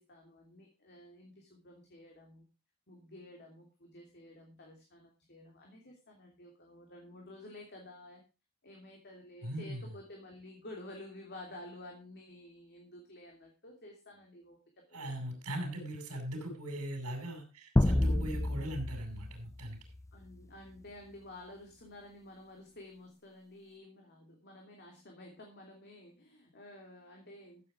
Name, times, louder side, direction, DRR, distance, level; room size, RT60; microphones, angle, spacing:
voice 1, 0.0-2.4 2.9-8.2 8.6-15.4 20.1-27.6, left 1 dB, 50° left, 0 dB, 3.0 m, -52 dB
voice 2, 9.4-9.9 14.9-19.8, right 1 dB, 90° right, 1 dB, 5.0 m, -39 dB
sound 1, 17.8-20.3, left 1 dB, 15° left, 0.5 m, -30 dB
14.0 x 8.4 x 5.0 m, 0.32 s
head